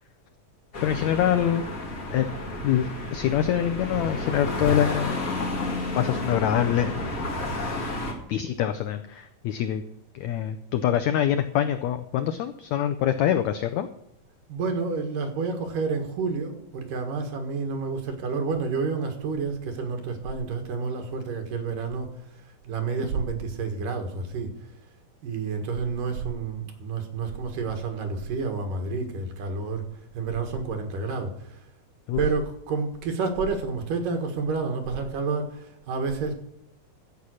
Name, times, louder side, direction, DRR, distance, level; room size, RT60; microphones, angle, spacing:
sound 1, 0.7-8.1, left 2 dB, 35° left, 1.6 m, -31 dB
voice 1, 0.8-1.6 2.1-2.3 2.6-5.2 6.0-7.0 8.3-9.8 10.1-13.9 32.1-32.2, left 10 dB, 90° left, 9 dB, 1.6 m, -25 dB
voice 2, 14.5-24.7 25.2-29.9 30.1-31.6 32.1-36.4, right 4 dB, 70° right, 6 dB, 3.2 m, -29 dB
13.0 x 8.4 x 6.4 m, 0.78 s
omnidirectional pair, 4.1 m